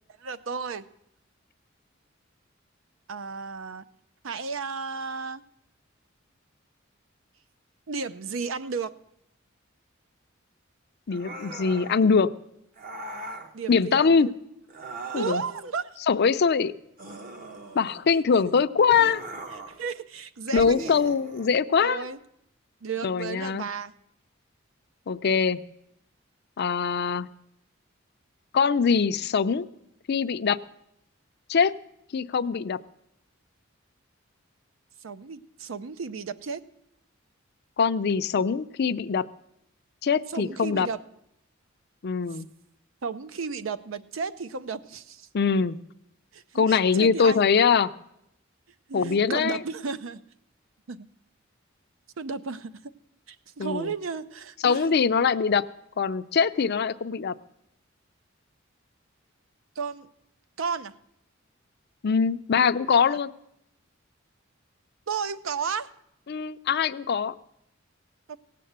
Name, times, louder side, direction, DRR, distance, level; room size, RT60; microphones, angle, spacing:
voice 1, 0.2-0.8 3.1-3.8 4.2-5.4 7.9-8.9 13.5-14.3 15.1-15.9 17.9-18.0 18.3-18.6 19.5-21.0 21.8-22.2 22.8-23.9 35.0-36.6 40.3-41.0 43.0-45.3 46.3-47.4 48.9-50.2 50.9-51.1 52.2-52.7 53.3-55.0 59.8-60.1 60.6-60.9 62.9-63.2 65.1-65.9 68.3-68.4, right 5 dB, 75° right, 14 dB, 0.6 m, -33 dB
voice 2, 11.1-12.3 13.7-14.3 15.1-15.4 16.1-16.7 17.7-19.2 20.5-22.1 23.0-23.7 25.1-25.6 26.6-27.3 28.5-29.7 30.1-30.6 31.5-31.7 32.1-32.8 37.8-39.2 40.0-40.9 42.0-42.5 45.3-45.8 46.5-47.9 48.9-49.6 53.6-53.9 54.6-55.6 56.0-57.3 62.0-63.3 66.3-67.3, left 5 dB, 55° left, 12 dB, 0.5 m, -23 dB
sound 1, 11.1-12.0 12.8-13.5 14.7-15.7 17.0-18.1 18.9-19.8 20.6-21.6, right 2 dB, 45° right, 1.0 m, -40 dB
17.0 x 7.6 x 8.0 m, 0.79 s
head